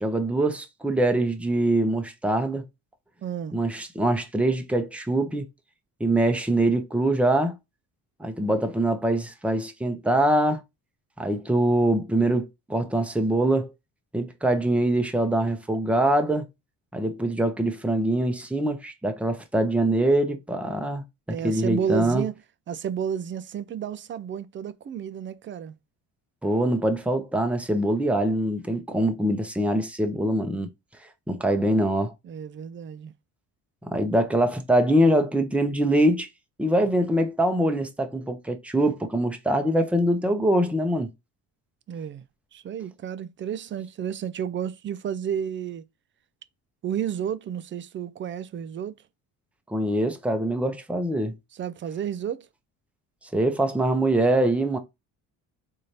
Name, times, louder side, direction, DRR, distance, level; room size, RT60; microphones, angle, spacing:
voice 1, 0.0-2.6 3.5-5.5 6.0-7.6 8.2-10.6 11.2-13.7 14.1-16.4 16.9-22.2 26.4-30.7 31.3-32.1 33.8-36.3 36.6-41.1 49.7-51.3 53.3-54.8, right 1 dB, 5° right, 0.7 m, -23 dB
voice 2, 3.2-3.6 21.3-22.4 22.7-25.8 32.2-33.1 41.9-42.3 42.5-45.8 46.8-48.9 51.5-52.5, right 8 dB, 30° right, 0.4 m, -31 dB
4.0 x 2.7 x 3.1 m
cardioid pair, 85°, 40 cm